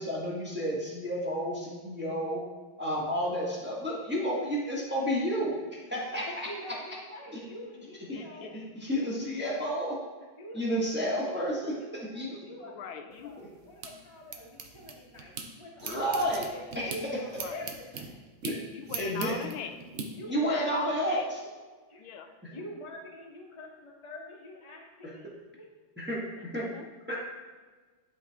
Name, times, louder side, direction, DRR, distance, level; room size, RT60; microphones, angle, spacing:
voice 1, 0.0-2.4 2.8-5.6 5.9-6.5 7.3-7.4 8.1-8.3 8.5-10.0 10.5-12.4 13.4-13.5 15.8-16.5 16.7-16.9 18.4-18.6 19.0-19.4 20.3-21.4 26.0-26.7 27.1-27.2, equal, 5° right, -5 dB, 1.3 m, -31 dB
voice 2, 6.1-8.5 8.9-9.1 9.4-10.0 10.4-11.3 11.8-18.2 20.1-20.6 21.0-21.2 21.9-25.3, left 1 dB, 20° left, -2 dB, 1.0 m, -46 dB
voice 3, 7.3-8.5 12.7-13.3 17.4-17.6 18.7-19.8 20.3-21.2 22.0-22.6 26.6-26.9, left 7 dB, 90° left, 7 dB, 1.4 m, -42 dB
sound 1, 13.1-15.5 15.8-20.1, right 5 dB, 75° right, 0.6 m, -41 dB
11.0 x 4.1 x 3.6 m, 1.4 s
omnidirectional pair, 2.2 m